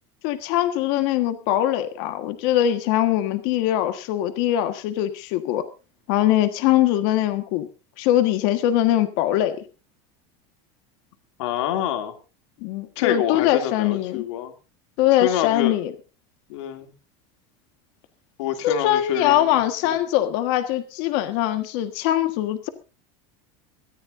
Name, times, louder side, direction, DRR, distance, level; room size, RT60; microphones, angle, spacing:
voice 1, 0.2-5.6 6.1-7.7 8.0-9.6 12.6-14.2 15.0-15.9 18.6-22.7, left 12 dB, 60° left, 8 dB, 1.5 m, -22 dB
voice 2, 11.4-12.1 13.0-14.5 15.1-15.8 16.5-16.9 18.4-20.0, left 10 dB, 85° left, 6 dB, 2.7 m, -27 dB
23.0 x 14.0 x 2.6 m, 0.32 s
supercardioid pair, 155°, 15 cm